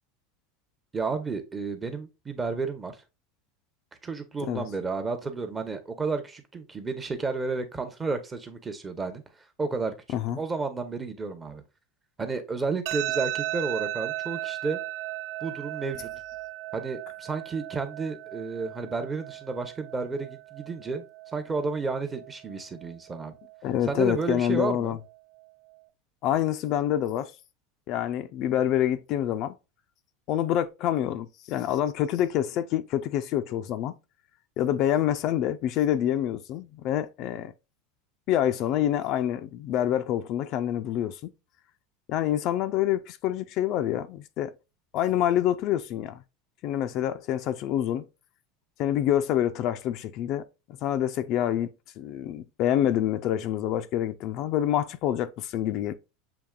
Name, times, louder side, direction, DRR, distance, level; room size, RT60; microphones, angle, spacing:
voice 1, 0.9-3.0 4.0-9.2 9.6-11.6 12.2-14.8 15.4-16.1 16.7-21.0 21.3-23.3 23.8-25.0, right 4 dB, 15° right, 0.8 m, -32 dB
sound 1, 12.9-25.8, right 17 dB, 60° right, 0.3 m, -37 dB
voice 2, 23.6-25.0 26.2-27.3 27.9-29.6 30.3-34.0 34.6-37.5 38.3-41.3 42.1-44.5 44.9-46.2 46.6-48.1 48.8-50.4 50.8-55.9, left 11 dB, 50° left, 0.4 m, -27 dB
6.9 x 2.9 x 2.3 m
supercardioid pair, 135°, 0 cm